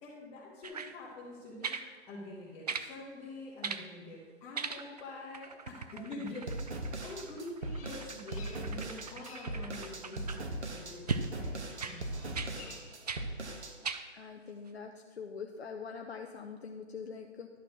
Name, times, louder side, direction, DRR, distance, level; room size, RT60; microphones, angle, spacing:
voice 1, 0.0-12.7, left 2 dB, 10° left, -8 dB, 1.2 m, -46 dB
sound 1, 0.6-0.9 1.6-1.9 2.7-2.9 3.6-3.9 4.5-5.1 5.3-10.4 11.1-11.3 11.8-12.0 12.3-12.5 13.1-13.2 13.8-14.0 14.7-14.8, right 5 dB, 35° right, 0.4 m, -39 dB
sound 2, 6.5-13.7, right 1 dB, 70° right, 1.5 m, -39 dB
Bird vocalization bird call bird song, 7.7-8.8 9.1-9.6 11.7-12.2 12.5-13.0, left 5 dB, 30° left, 1.3 m, -53 dB
voice 2, 14.1-17.5, left 6 dB, 60° left, 4 dB, 0.8 m, -44 dB
11.5 x 4.5 x 6.2 m, 1.5 s
figure-of-eight pair, 145°, 36 cm